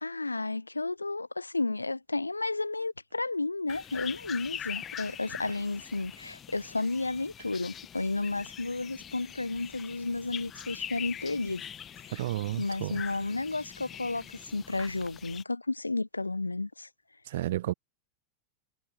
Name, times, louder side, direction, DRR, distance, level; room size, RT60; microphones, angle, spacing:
voice 1, 0.0-11.6 12.1-12.2 12.6-16.9, left 3 dB, 80° left, 0.9 m, -32 dB
sound 1, 3.7-15.4, left 9 dB, 25° left, 1.3 m, -43 dB
voice 2, 12.1-13.0 17.3-17.7, right 14 dB, 55° right, 0.3 m, -32 dB
figure-of-eight pair, 90°, 0 cm